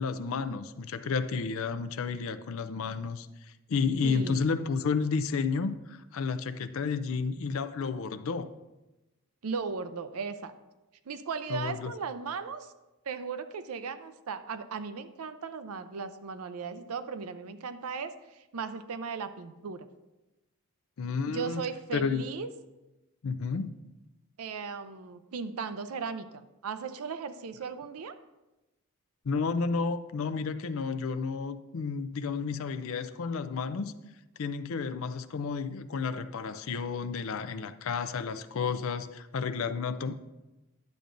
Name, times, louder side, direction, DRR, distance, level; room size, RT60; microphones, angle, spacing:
voice 1, 0.0-3.3 3.7-8.5 11.5-11.9 21.0-21.6 21.9-22.2 23.2-23.7 29.2-33.9 34.4-40.1, left 5 dB, 70° left, 11 dB, 0.4 m, -31 dB
voice 2, 4.0-4.4 9.4-10.5 11.1-12.7 13.0-19.9 21.3-22.5 24.4-28.2, right 5 dB, 85° right, 11 dB, 0.5 m, -37 dB
10.5 x 6.8 x 2.5 m, 1.0 s
head